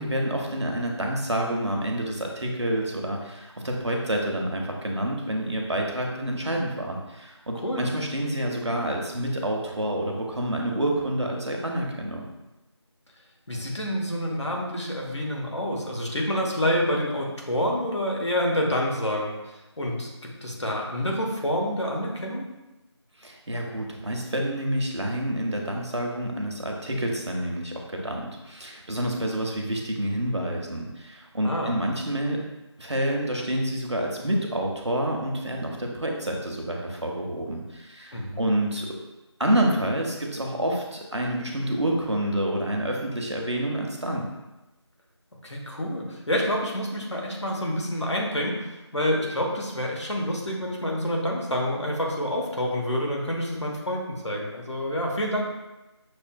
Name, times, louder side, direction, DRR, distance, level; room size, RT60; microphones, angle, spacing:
voice 1, 0.0-12.3 23.2-32.4 32.8-39.0 39.4-44.3, right 1 dB, 70° right, 0 dB, 0.9 m, -28 dB
voice 2, 13.5-20.1 20.4-22.5 31.4-31.7 38.1-38.4 45.4-55.4, equal, 75° left, -1 dB, 1.1 m, -28 dB
6.4 x 2.6 x 2.2 m, 1.0 s
figure-of-eight pair, 175°, 15 cm